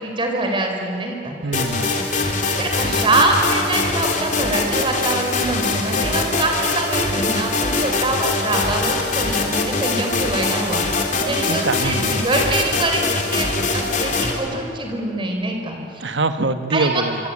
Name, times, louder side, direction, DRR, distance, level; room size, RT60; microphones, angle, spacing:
voice 1, 0.0-1.4 2.6-13.5 13.7-16.0 16.7-17.3, right 2 dB, 30° right, 2 dB, 4.5 m, -24 dB
voice 2, 1.4-2.0 11.5-12.3 16.0-17.2, right 2 dB, 85° right, 9 dB, 1.4 m, -24 dB
sound 1, 1.5-14.3, left 3 dB, 45° left, 3.6 m, -22 dB
25.5 x 25.5 x 8.8 m, 2.6 s
head